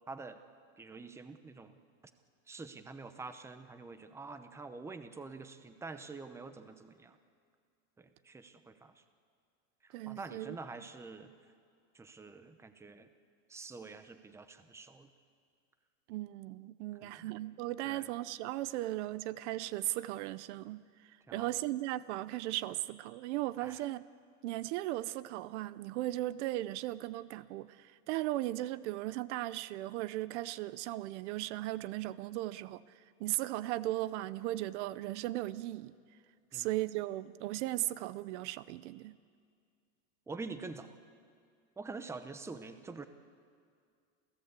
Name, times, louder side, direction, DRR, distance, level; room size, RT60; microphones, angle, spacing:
voice 1, 0.1-0.4 0.8-1.7 2.5-7.2 8.0-9.0 9.8-11.3 11.9-13.1 13.5-15.1 17.0-17.3 17.8-18.1 21.3-21.5 23.6-23.8 36.5-36.7 40.3-41.0 41.8-43.1, right 3 dB, 5° right, 10 dB, 0.8 m, -46 dB
voice 2, 9.9-10.6 16.1-20.8 21.3-24.0 24.4-32.8 33.2-35.9 36.5-39.2, right 16 dB, 65° right, 16 dB, 0.7 m, -37 dB
28.5 x 15.5 x 8.3 m, 2.2 s
supercardioid pair, 145°, 38 cm